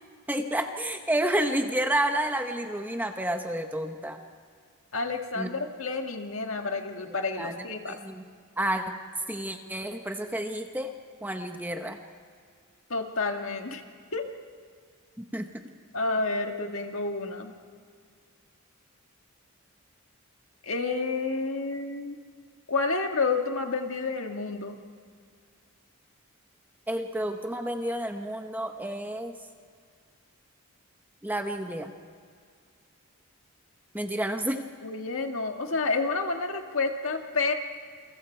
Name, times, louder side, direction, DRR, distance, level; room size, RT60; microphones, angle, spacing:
voice 1, 0.3-4.2 5.3-5.5 7.0-8.2 8.6-8.9 9.3-10.9 11.2-12.0 15.2-15.5 26.9-29.4 31.2-31.9 33.9-34.6, right 1 dB, 10° right, 5 dB, 1.1 m, -30 dB
voice 2, 4.9-8.0 12.9-13.8 14.1-14.2 15.9-17.5 20.6-22.2 22.7-24.8 34.8-37.5, left 3 dB, 65° left, 4 dB, 1.9 m, -29 dB
28.5 x 23.0 x 4.6 m, 2.1 s
head